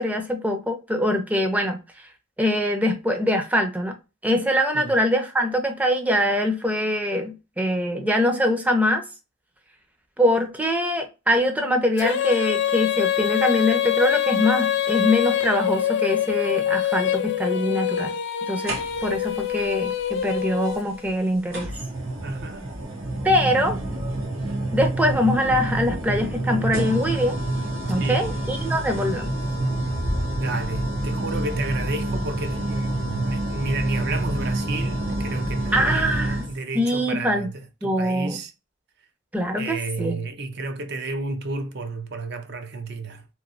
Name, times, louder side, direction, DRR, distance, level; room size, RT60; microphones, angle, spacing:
voice 1, 0.0-1.8 2.4-3.9 4.2-9.0 10.2-18.2 18.5-21.7 23.2-23.8 24.7-27.4 27.9-29.3 35.7-36.5 36.7-37.5 37.8-38.4 39.3-40.2, left 1 dB, 10° right, 0.5 m, -23 dB
Female singing, 12.0-21.1, left 10 dB, 60° left, 0.4 m, -24 dB
sound 1, 18.7-19.3 20.6-20.7 21.5-36.5, right 1 dB, 80° right, 1.1 m, -27 dB
voice 2, 22.2-22.7 27.9-28.3 30.3-38.5 39.6-43.3, right 3 dB, 55° right, 0.6 m, -32 dB
3.0 x 2.7 x 2.5 m
head